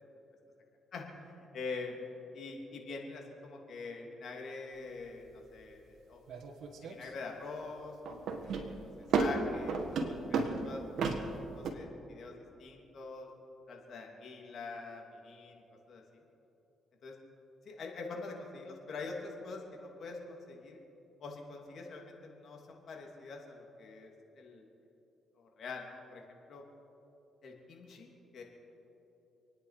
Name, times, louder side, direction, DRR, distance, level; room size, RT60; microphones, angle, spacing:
voice 1, 1.5-2.0 2.3-6.4 6.8-8.8 9.1-10.8 11.5-12.3 12.6-13.3 13.7-15.6 15.9-16.0 17.0-17.1 17.7-20.8 21.2-24.1 24.3-24.7 25.4-26.6 27.4-28.4, left 3 dB, 60° left, 1 dB, 2.9 m, -44 dB
sound 1, 6.3-7.1 8.1-11.7, right 4 dB, 70° right, 1.6 m, -33 dB
28.0 x 9.7 x 5.0 m, 3.0 s
cardioid pair, 90°, 0 cm